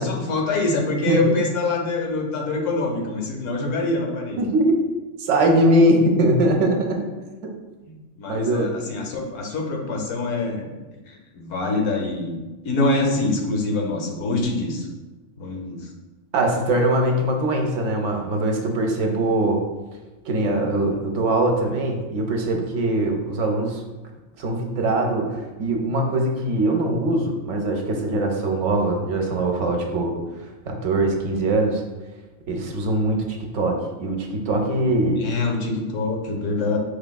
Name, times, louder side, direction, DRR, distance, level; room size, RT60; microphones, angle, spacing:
voice 1, 0.0-4.5 7.8-10.7 11.1-14.9 15.4-15.9 35.2-36.8, left 2 dB, 75° left, 2 dB, 1.0 m, -25 dB
voice 2, 4.4-4.8 5.2-7.1 7.4-7.5 8.3-8.7 16.3-19.6 20.3-23.8 24.4-30.2 30.7-31.8 32.5-35.3, right 1 dB, 70° right, 2 dB, 0.9 m, -22 dB
5.0 x 3.3 x 2.2 m, 1.2 s
omnidirectional pair, 1.4 m